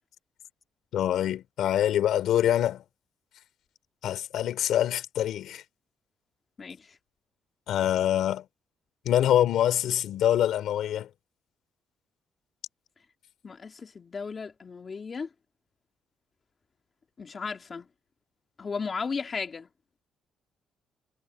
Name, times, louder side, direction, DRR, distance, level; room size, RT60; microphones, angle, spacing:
voice 1, 0.9-2.8 4.0-5.6 7.7-8.4 9.0-11.1, left 11 dB, 80° left, 3.4 m, -25 dB
voice 2, 6.6-7.0 13.4-15.3 17.2-17.9 18.6-19.7, left 5 dB, 40° left, 2.9 m, -35 dB
cardioid pair, 90°, 0 cm